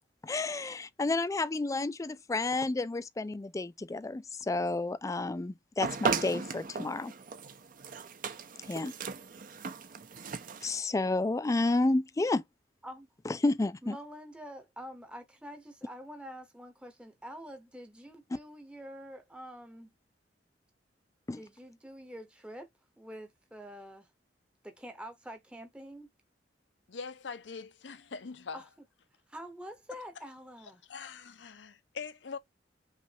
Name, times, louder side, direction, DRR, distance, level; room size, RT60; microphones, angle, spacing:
voice 1, 0.2-7.1 8.7-8.9 10.6-12.4 13.3-14.0 21.3-21.4, left 2 dB, 15° left, 0.3 m, -31 dB
sound 1, 5.8-10.8, right 5 dB, 50° right, 0.6 m, -36 dB
voice 2, 13.8-19.9 21.3-22.7 23.0-24.1 24.6-26.1 28.5-28.7 29.3-30.8, equal, 5° right, 0.8 m, -46 dB
voice 3, 26.9-28.6 30.9-32.4, left 5 dB, 75° left, 0.6 m, -42 dB
5.7 x 2.4 x 2.7 m
head